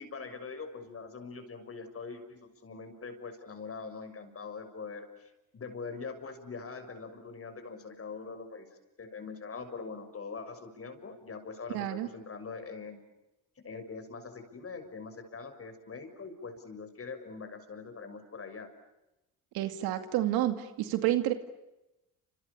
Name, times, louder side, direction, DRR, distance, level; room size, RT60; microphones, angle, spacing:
voice 1, 0.0-8.7 9.0-13.0 13.6-18.7, left 4 dB, 40° left, 8 dB, 6.6 m, -43 dB
voice 2, 11.7-12.1 19.5-21.3, right 13 dB, 85° right, 8 dB, 2.4 m, -29 dB
29.5 x 27.5 x 7.1 m, 0.95 s
cardioid pair, 85°, 36 cm